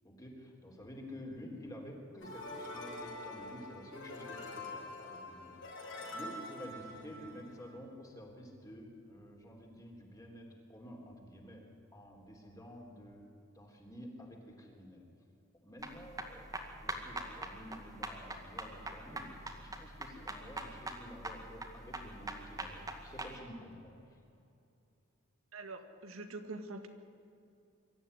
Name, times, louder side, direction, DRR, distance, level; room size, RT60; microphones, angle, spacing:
voice 1, 0.0-11.6 11.9-13.3 13.5-15.0 15.6-23.9, equal, 15° left, 1 dB, 3.7 m, -50 dB
sound 1, 2.2-7.7, left 2 dB, 65° left, 5.9 m, -45 dB
sound 2, 15.8-23.3, right 2 dB, 15° right, 2.1 m, -42 dB
voice 2, 25.5-26.9, right 2 dB, 85° right, 7 dB, 1.9 m, -44 dB
24.0 x 13.5 x 9.9 m, 2.7 s
head